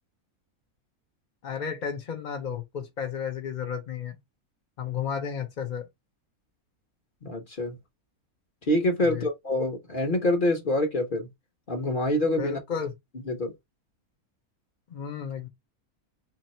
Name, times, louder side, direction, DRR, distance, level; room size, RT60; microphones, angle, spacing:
voice 1, 1.4-4.2 4.8-5.9 9.0-9.3 12.4-12.9 14.9-15.5, left 7 dB, 55° left, 0.5 m, -33 dB
voice 2, 7.2-7.8 8.7-11.3 11.7-12.6 13.3-13.5, left 1 dB, 40° left, 0.9 m, -26 dB
2.9 x 2.8 x 4.1 m
omnidirectional pair, 1.6 m